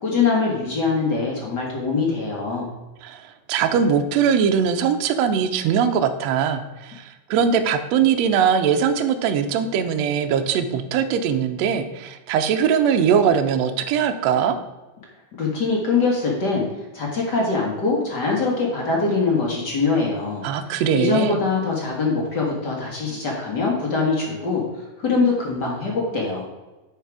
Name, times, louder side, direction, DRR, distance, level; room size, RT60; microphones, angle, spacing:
voice 1, 0.0-2.7 15.4-16.6 16.9-24.6 25.0-26.4, left 4 dB, 45° left, -2 dB, 1.4 m, -23 dB
voice 2, 3.5-14.6 20.4-21.4, right 7 dB, 85° right, 6 dB, 1.5 m, -21 dB
9.2 x 4.8 x 4.8 m, 1.1 s
omnidirectional pair, 3.8 m